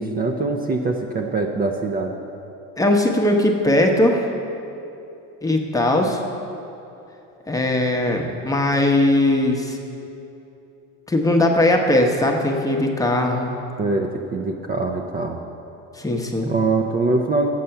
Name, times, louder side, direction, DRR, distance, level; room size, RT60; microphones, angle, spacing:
voice 1, 0.0-2.1 13.8-15.4 16.5-17.5, right 3 dB, 30° right, 2 dB, 0.5 m, -23 dB
voice 2, 2.8-4.3 5.4-6.2 7.5-9.8 11.1-13.6 16.0-16.5, left 1 dB, 10° left, 2 dB, 0.9 m, -19 dB
7.7 x 6.8 x 5.6 m, 2.8 s
supercardioid pair, 100°, 33 cm